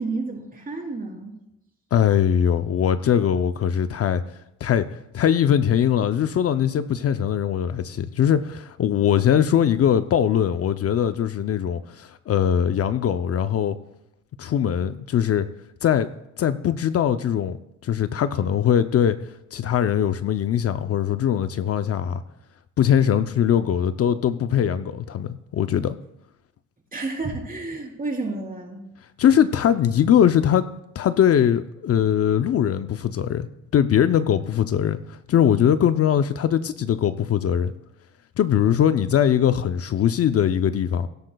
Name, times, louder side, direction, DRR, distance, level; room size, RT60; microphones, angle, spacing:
voice 1, 0.0-1.4 26.9-28.8, right 3 dB, 30° right, 3.6 m, -30 dB
voice 2, 1.9-4.2 4.6-4.9 5.1-13.8 14.4-15.5 15.8-16.1 16.4-17.6 17.8-19.2 19.5-22.2 22.8-26.0 29.2-30.6 30.9-33.5 33.7-37.7 38.4-41.1, left 9 dB, 50° left, 0.6 m, -21 dB
17.0 x 12.0 x 2.3 m
cardioid pair, 90°, 30 cm